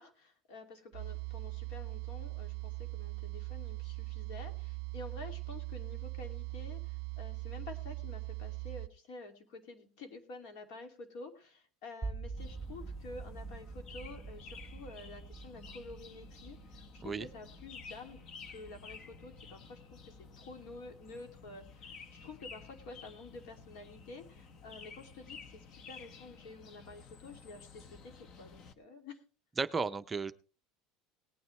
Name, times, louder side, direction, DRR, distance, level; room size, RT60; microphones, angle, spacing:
voice 1, 0.0-29.2, left 3 dB, 70° left, 2.5 m, -50 dB
sound 1, 0.9-8.9, right 25 dB, 70° right, 0.5 m, -41 dB
sound 2, 12.0-22.0, right 4 dB, 10° left, 2.6 m, -47 dB
sound 3, 12.4-28.7, left 5 dB, 45° left, 0.9 m, -53 dB
voice 2, 29.6-30.3, right 4 dB, 20° right, 0.5 m, -34 dB
18.5 x 9.3 x 3.2 m
supercardioid pair, 140°, 0 cm